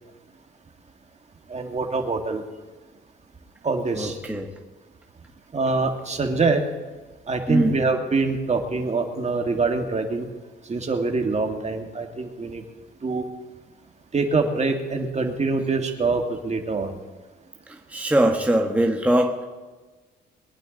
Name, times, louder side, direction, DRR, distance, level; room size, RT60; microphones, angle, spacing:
voice 1, 1.5-2.4 3.6-4.2 5.5-6.6 7.3-10.3 10.7-12.6 13.0-13.2 14.1-17.0, right 3 dB, 35° right, 4 dB, 2.0 m, -24 dB
voice 2, 4.0-4.5 7.5-7.7 17.7-19.4, right 1 dB, 5° right, 1 dB, 1.5 m, -22 dB
22.5 x 10.5 x 4.0 m, 1.3 s
cardioid pair, 90°, 20 cm